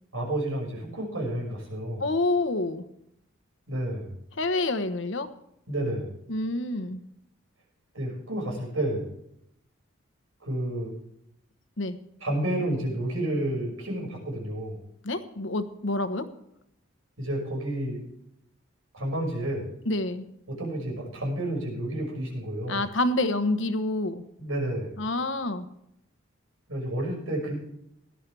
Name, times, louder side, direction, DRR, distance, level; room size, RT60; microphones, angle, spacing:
voice 1, 0.1-2.0 3.7-4.2 5.7-6.1 7.9-9.1 10.4-10.9 12.2-14.8 17.2-18.0 18.9-19.7 20.5-22.8 24.4-24.9 26.7-27.5, right 1 dB, 90° right, -1 dB, 5.9 m, -30 dB
voice 2, 2.0-2.8 4.4-5.3 6.3-7.0 11.8-12.0 15.0-16.3 19.9-20.3 22.7-24.2 25.0-25.7, left 2 dB, 65° left, 10 dB, 1.1 m, -27 dB
17.5 x 11.5 x 3.4 m, 0.77 s
head